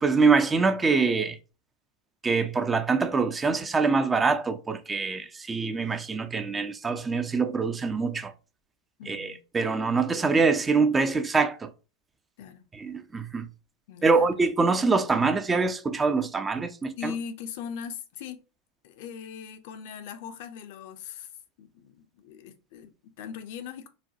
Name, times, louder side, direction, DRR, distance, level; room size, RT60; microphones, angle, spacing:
voice 1, 0.0-1.4 2.2-8.3 9.1-11.7 12.7-13.5 14.0-17.1, right 4 dB, 20° right, 0.4 m, -24 dB
voice 2, 9.0-9.4 12.4-12.6 13.9-14.3 17.0-18.4 18.8-21.3 21.6-23.9, left 7 dB, 55° left, 0.4 m, -40 dB
4.0 x 2.1 x 2.7 m
figure-of-eight pair, 85°, 0 cm